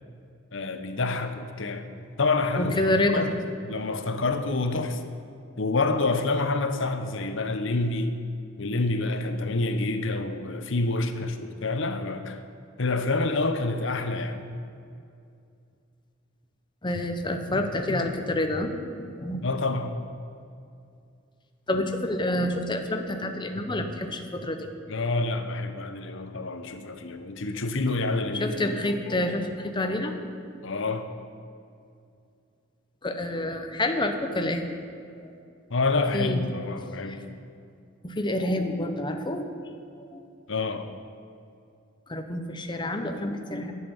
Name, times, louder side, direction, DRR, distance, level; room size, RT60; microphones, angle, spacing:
voice 1, 0.5-1.9 2.2-3.3 3.6-5.0 5.6-8.1 8.6-12.4 12.8-14.4 19.4-20.0 24.9-28.7 30.6-31.1 35.7-37.2 40.5-40.9, left 3 dB, 70° left, 1.0 m, -27 dB
voice 2, 2.6-3.2 16.8-19.4 21.7-24.7 28.3-30.2 33.0-34.7 35.2-35.3 36.1-36.4 36.9-37.0 38.0-39.5 40.1-40.2 42.1-43.7, left 1 dB, 25° left, 1.0 m, -28 dB
11.0 x 7.6 x 9.9 m
head